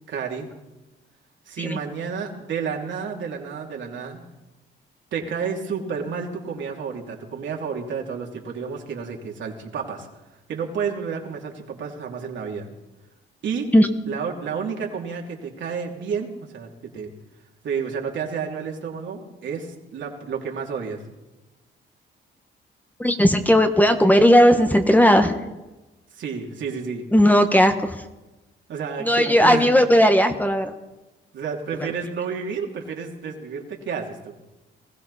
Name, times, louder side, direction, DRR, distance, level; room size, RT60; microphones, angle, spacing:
voice 1, 0.1-0.5 1.5-4.2 5.1-10.1 10.5-12.7 13.4-13.7 14.1-17.1 17.6-21.0 26.2-27.0 28.7-30.1 31.3-34.3, right 6 dB, 70° right, 0 dB, 3.1 m, -30 dB
voice 2, 23.0-25.4 27.1-28.0 29.0-30.7 31.8-31.9, equal, 10° left, 7 dB, 1.3 m, -16 dB
20.5 x 15.5 x 4.2 m, 1.1 s
cardioid pair, 90°, 20 cm